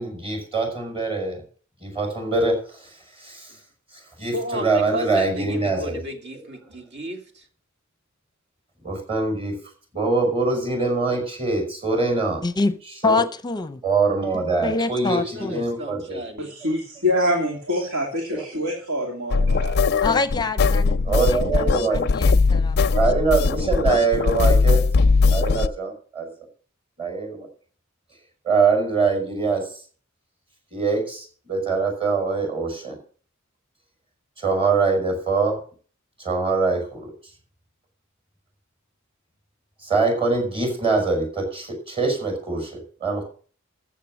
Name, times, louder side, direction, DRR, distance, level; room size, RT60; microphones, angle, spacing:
voice 1, 0.0-1.4 1.8-3.6 3.9-6.0 8.8-9.5 9.9-12.4 13.0-13.2 13.8-15.2 15.5-16.2 17.8-17.9 18.3-18.5 21.0-22.0 22.9-24.8 25.3-26.3 27.0-27.5 28.4-29.8 30.7-33.0 34.4-35.6 36.2-37.1 39.8-43.2, right 4 dB, 25° right, 5.3 m, -23 dB
voice 2, 4.3-7.4 15.3-16.5, equal, 55° right, 2.5 m, -33 dB
voice 3, 12.4-12.8 13.0-13.8 14.3-15.6 20.0-23.0, left 3 dB, 20° left, 0.7 m, -26 dB
voice 4, 16.6-19.7, left 1 dB, 80° right, 2.8 m, -25 dB
sound 1, 19.3-25.7, left 4 dB, 50° left, 0.4 m, -19 dB
14.0 x 7.4 x 6.2 m
head